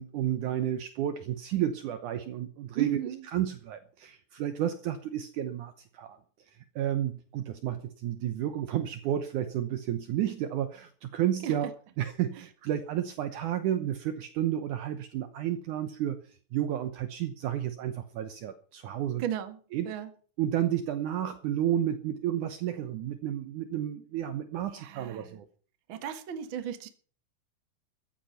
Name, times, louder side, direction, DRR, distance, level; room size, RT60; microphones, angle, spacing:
voice 1, 0.0-3.0 3.3-6.2 6.8-16.2 16.5-19.2 19.7-19.9 20.4-25.5, right 11 dB, 70° right, 10 dB, 2.1 m, -31 dB
voice 2, 2.7-3.2 11.4-11.5 19.2-19.6 19.8-20.1 24.7-25.4 25.9-26.9, right 10 dB, 50° right, 9 dB, 1.5 m, -35 dB
14.5 x 10.5 x 5.7 m, 0.42 s
omnidirectional pair, 4.3 m